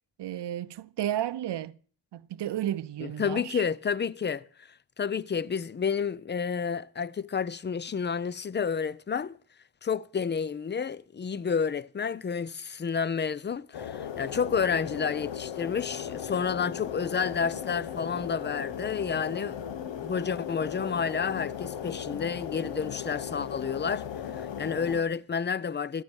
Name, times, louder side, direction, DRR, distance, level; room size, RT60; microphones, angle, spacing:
voice 1, 0.2-1.8 2.1-3.6, right 11 dB, 70° right, 0.6 m, -32 dB
voice 2, 3.0-4.4 5.0-9.4 9.8-19.6 20.0-24.0 24.3-26.0, left 6 dB, 25° left, 0.5 m, -30 dB
sound 1, 13.7-25.0, left 8 dB, 80° left, 0.9 m, -37 dB
13.0 x 8.6 x 6.2 m
cardioid pair, 75°, 43 cm